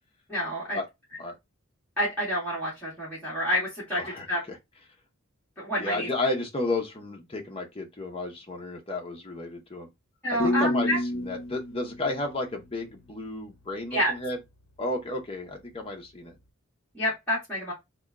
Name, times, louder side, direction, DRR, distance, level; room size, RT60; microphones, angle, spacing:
voice 1, 0.3-0.8 2.0-4.0 4.3-4.4 5.6-6.1 10.2-11.0 13.9-14.1 16.9-17.7, equal, 5° left, 1.6 m, -28 dB
voice 2, 4.0-4.6 5.8-9.9 10.3-14.4 14.8-16.4, left 2 dB, 25° left, 0.8 m, -32 dB
sound 1, 10.4-13.4, left 1 dB, 70° left, 0.7 m, -30 dB
3.5 x 2.3 x 3.6 m
head